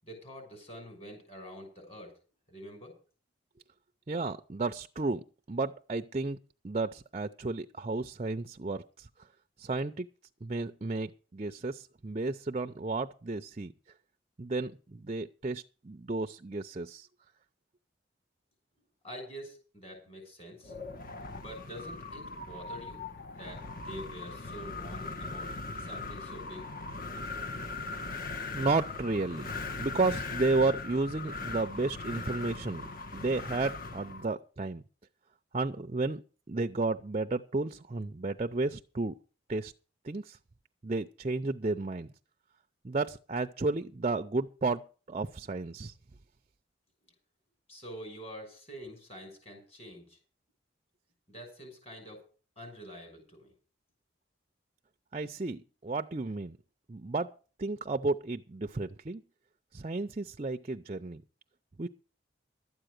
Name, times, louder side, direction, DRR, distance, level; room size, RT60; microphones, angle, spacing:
voice 1, 0.0-2.1 2.5-3.0 19.0-20.7 21.3-26.7 47.7-50.2 51.3-52.2 52.6-53.5, equal, 30° left, 4 dB, 6.2 m, -46 dB
voice 2, 4.1-6.4 6.6-9.1 9.6-10.1 10.4-13.7 14.4-17.1 28.5-29.5 29.8-32.8 33.1-34.8 35.5-36.2 36.5-39.1 39.5-39.7 40.0-40.4 40.8-42.1 42.8-44.8 45.1-45.9 55.1-56.6 56.9-57.3 57.6-59.2 59.7-61.2 61.8-61.9, right 3 dB, 35° right, 9 dB, 0.5 m, -32 dB
Wind, 20.6-34.3, left 3 dB, 50° left, 1.3 m, -40 dB
12.5 x 8.9 x 6.6 m, 0.37 s
head